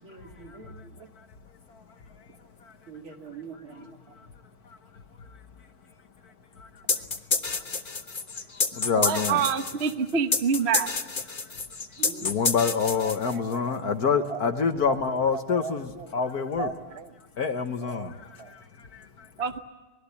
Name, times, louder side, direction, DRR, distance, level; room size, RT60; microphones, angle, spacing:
voice 1, 0.0-0.7 2.9-3.9 12.0-12.3, right 6 dB, 75° right, 3 dB, 3.5 m, -43 dB
voice 2, 3.3-4.0 8.9-10.9 13.0-15.0 15.3-16.1 16.6-17.1 17.8-18.1 18.4-18.5 19.4-19.6, right 6 dB, 40° right, 9 dB, 1.0 m, -30 dB
sound 1, 6.9-13.6, left 4 dB, 30° left, 1.1 m, -28 dB
voice 3, 8.8-9.4 12.2-16.7 17.4-18.1, left 6 dB, 50° left, 8 dB, 1.4 m, -26 dB
25.0 x 21.0 x 8.4 m, 1.3 s
omnidirectional pair, 2.3 m